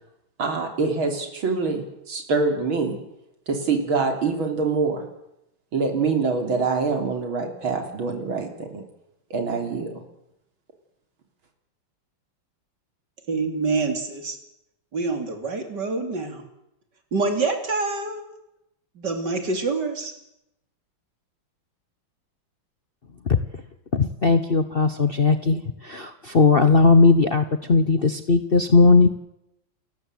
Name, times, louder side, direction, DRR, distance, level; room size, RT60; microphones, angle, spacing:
voice 1, 0.4-3.0 3.5-5.0 5.7-8.8 9.3-10.0, right 4 dB, 90° right, 4 dB, 4.1 m, -25 dB
voice 2, 13.3-14.4 14.9-16.4 17.1-18.2 19.0-20.1, right 3 dB, 55° right, 6 dB, 3.7 m, -26 dB
voice 3, 23.9-29.1, left 3 dB, 40° left, 10 dB, 0.8 m, -18 dB
29.0 x 14.5 x 8.0 m, 0.85 s
omnidirectional pair, 2.2 m